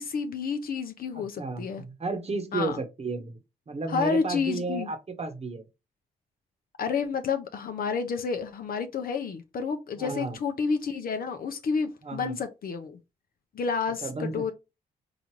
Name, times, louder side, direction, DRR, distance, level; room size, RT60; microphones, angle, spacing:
voice 1, 0.0-1.8 2.5-2.8 3.9-4.9 6.8-13.0 13.5-14.5, left 5 dB, 55° left, 0.6 m, -30 dB
voice 2, 1.2-3.4 3.7-5.6 10.0-10.4 12.0-12.3 14.0-14.5, right 3 dB, 35° right, 1.1 m, -33 dB
4.9 x 2.4 x 3.0 m
supercardioid pair, 55°, 18 cm